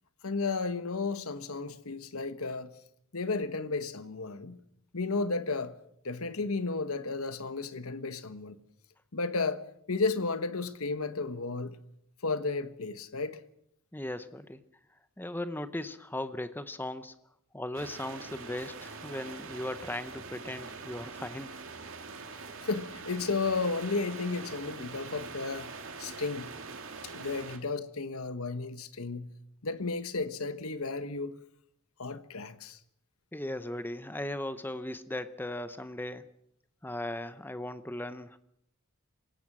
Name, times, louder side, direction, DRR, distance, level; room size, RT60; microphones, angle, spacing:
voice 1, 0.2-2.7 3.1-4.6 4.9-5.8 6.0-8.6 9.1-11.8 12.2-13.4 22.6-25.7 26.0-26.5 27.0-29.3 29.6-31.3 32.0-32.8, left 3 dB, 80° left, 1.3 m, -33 dB
voice 2, 13.9-14.6 15.2-17.1 17.5-21.5 33.3-36.2 36.8-38.4, left 1 dB, 10° left, 0.8 m, -37 dB
sound 1, 17.7-27.6, right 4 dB, 65° right, 2.4 m, -44 dB
27.0 x 16.5 x 6.2 m
head